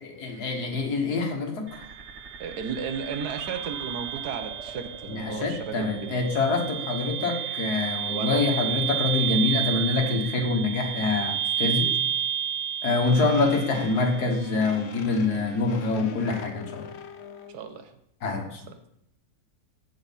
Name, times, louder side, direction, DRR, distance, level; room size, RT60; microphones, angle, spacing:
voice 1, 0.0-1.8 5.1-11.9 12.8-16.8 18.2-18.6, left 3 dB, 85° left, 3 dB, 2.1 m, -26 dB
sound 1, 1.7-14.7, right 9 dB, 55° right, 1.1 m, -31 dB
voice 2, 2.4-6.2 8.1-8.6 11.8-12.2 13.3-13.4 17.5-17.9, right 6 dB, 85° right, 8 dB, 1.5 m, -35 dB
sound 2, 13.0-17.6, left 7 dB, 60° left, 0.8 m, -41 dB
15.0 x 5.1 x 4.1 m, 0.75 s
omnidirectional pair, 1.6 m